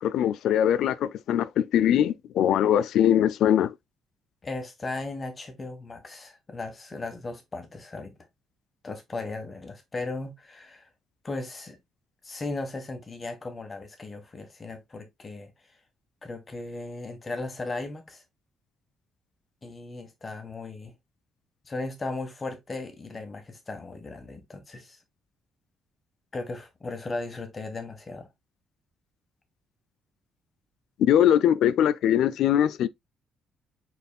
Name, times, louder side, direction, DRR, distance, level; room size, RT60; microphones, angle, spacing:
voice 1, 0.0-3.7 31.0-32.9, left 10 dB, 80° left, 0.4 m, -22 dB
voice 2, 4.4-8.2 8.8-10.9 11.2-11.8 12.2-15.8 16.2-18.2 19.6-20.9 21.6-25.0 26.3-28.3, left 3 dB, 30° left, 1.5 m, -36 dB
5.5 x 4.1 x 2.3 m
cardioid pair, 105°, 0 cm